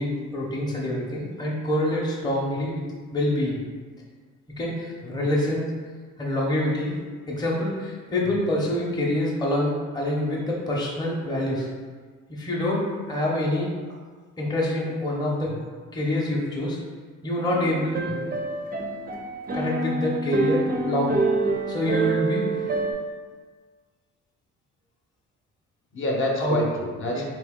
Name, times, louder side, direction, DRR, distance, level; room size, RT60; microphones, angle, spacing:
voice 1, 0.0-2.8 3.1-3.6 4.6-5.7 6.2-7.0 7.3-11.7 12.3-13.7 14.4-15.6 15.9-16.8 17.2-18.1 19.5-21.2 21.7-22.7 26.4-26.6 27.1-27.2, left 1 dB, 15° left, -4 dB, 0.7 m, -26 dB
sound 1, 17.4-22.9, right 3 dB, 30° right, 0.4 m, -27 dB
voice 2, 25.9-27.2, left 1 dB, 40° left, -1 dB, 0.7 m, -28 dB
4.3 x 2.8 x 3.5 m, 1.5 s
cardioid pair, 140°, 31 cm